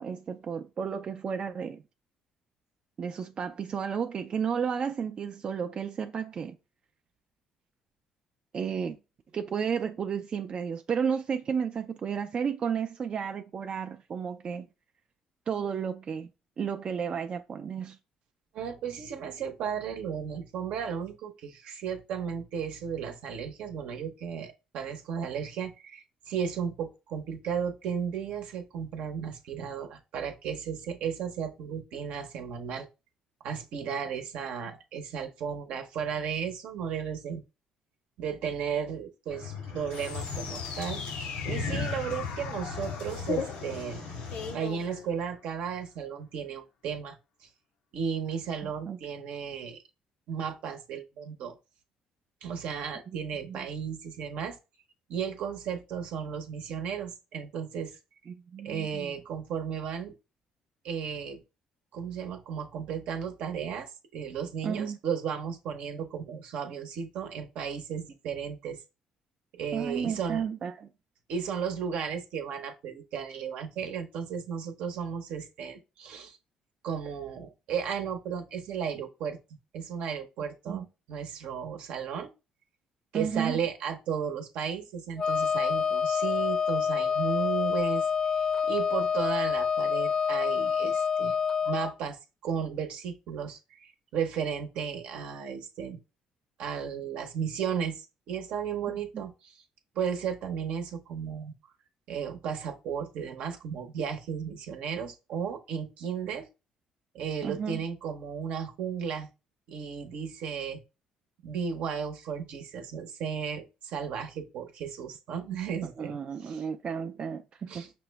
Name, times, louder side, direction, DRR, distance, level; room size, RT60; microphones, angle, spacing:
voice 1, 0.0-1.8 3.0-6.6 8.5-9.0 9.3-14.7 15.5-16.3 16.6-18.0 48.6-49.0 53.1-53.2 53.5-53.7 58.3-59.1 64.6-65.0 69.7-70.9 80.7-80.9 83.1-83.6 98.9-99.2 107.4-107.8 115.8-117.9, right 7 dB, 45° right, 0.4 m, -33 dB
voice 2, 18.5-32.9 33.4-37.4 38.2-44.1 44.5-47.5 47.9-49.8 50.3-51.5 52.4-54.6 55.1-58.0 58.6-60.1 60.8-61.4 61.9-68.8 69.5-70.4 71.3-76.4 76.8-79.4 79.7-82.3 83.1-91.4 91.6-92.2 92.4-96.0 96.6-99.6 99.9-101.5 102.1-106.5 107.1-109.3 109.7-110.8 111.4-116.6 117.7-117.9, right 7 dB, 75° right, 0.8 m, -34 dB
sound 1, 39.3-44.5, left 5 dB, 90° left, 1.9 m, -37 dB
sound 2, 39.9-45.6, left 7 dB, 70° left, 0.6 m, -39 dB
Wind instrument woodwind instrument, 85.2-91.9, left 6 dB, 35° left, 0.4 m, -27 dB
5.8 x 2.0 x 3.3 m
supercardioid pair, 70°, 2 cm